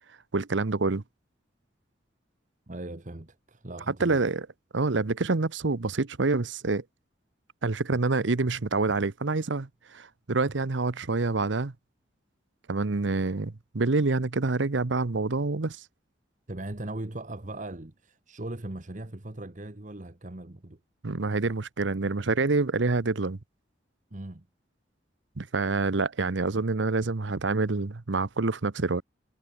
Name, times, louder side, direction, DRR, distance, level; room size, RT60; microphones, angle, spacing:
voice 1, 0.3-1.0 4.0-4.5 4.7-6.8 7.6-11.7 12.7-15.9 21.0-23.4 25.4-29.0, right 3 dB, 80° right, 0.9 m, -27 dB
voice 2, 2.7-4.2 16.5-20.8 24.1-24.5, right 1 dB, 45° right, 1.3 m, -39 dB
head